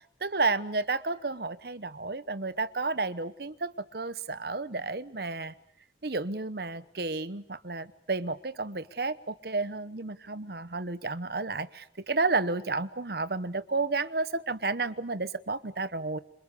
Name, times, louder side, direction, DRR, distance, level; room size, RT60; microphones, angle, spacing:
voice 1, 0.2-5.5 6.0-16.2, right 3 dB, 55° right, 15 dB, 1.0 m, -31 dB
27.5 x 27.0 x 6.9 m, 0.67 s
head